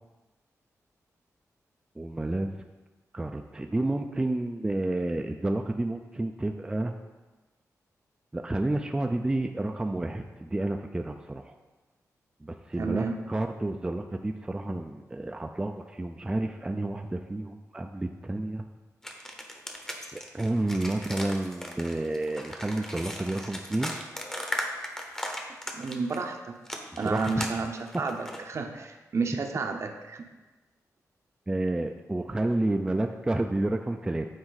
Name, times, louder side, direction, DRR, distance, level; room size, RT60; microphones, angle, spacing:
voice 1, 2.0-2.5 3.1-6.9 8.3-11.6 12.4-18.6 20.1-23.9 27.0-27.7 31.5-34.3, right 2 dB, 15° right, 4 dB, 0.3 m, -30 dB
voice 2, 12.8-13.1 25.7-26.5 27.0-28.2 28.5-30.2, right 4 dB, 50° right, 5 dB, 0.7 m, -31 dB
sound 1, 19.0-26.2 26.6-28.4, equal, 10° left, 0.8 m, -37 dB
8.7 x 4.4 x 3.9 m, 1.2 s
wide cardioid pair, 135°, 6 cm